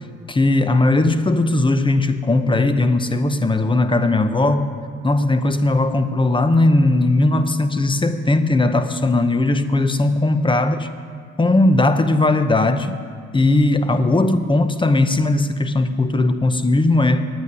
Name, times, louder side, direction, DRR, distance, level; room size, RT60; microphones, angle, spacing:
voice 1, 0.3-4.8 5.0-10.9 11.4-13.0 13.3-17.2, left 2 dB, 15° left, 10 dB, 0.8 m, -18 dB
9.0 x 8.8 x 9.7 m, 2.1 s
cardioid pair, 90°, 30 cm